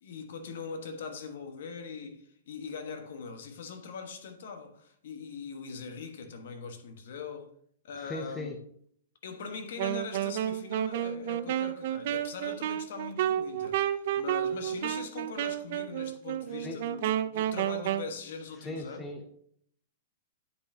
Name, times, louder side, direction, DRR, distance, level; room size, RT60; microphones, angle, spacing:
voice 1, 0.0-7.5 7.8-8.5 9.2-19.0, left 5 dB, 60° left, 1.2 m, -41 dB
voice 2, 7.9-8.6 16.6-16.8 18.6-19.3, left 2 dB, 5° left, 0.6 m, -38 dB
Wind instrument woodwind instrument, 9.8-18.1, right 11 dB, 45° right, 0.4 m, -31 dB
9.7 x 5.3 x 2.8 m
hypercardioid pair, 170°, 0 cm